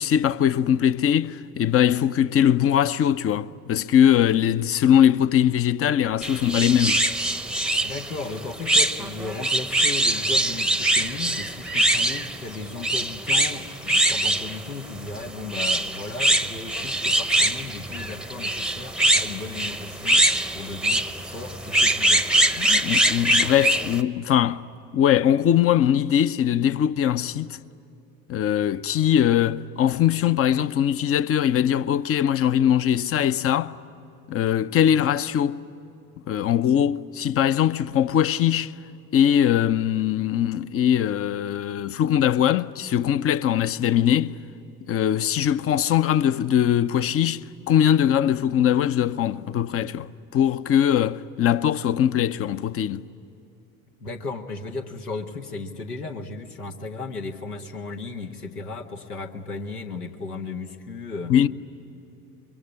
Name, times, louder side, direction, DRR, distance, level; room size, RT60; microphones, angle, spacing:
voice 1, 0.0-7.1 22.6-24.6 24.9-27.6 28.3-33.7 34.3-35.6 36.3-38.7 39.1-44.3 44.9-47.4 47.7-53.0 61.3-61.5, left 10 dB, 30° left, 0.7 m, -21 dB
sound 1, 6.2-24.0, right 1 dB, ahead, 0.9 m, -23 dB
voice 2, 7.8-20.3 20.5-22.3 54.0-61.3, left 3 dB, 85° left, 1.6 m, -35 dB
25.5 x 23.0 x 9.9 m
figure-of-eight pair, 65°, 45 cm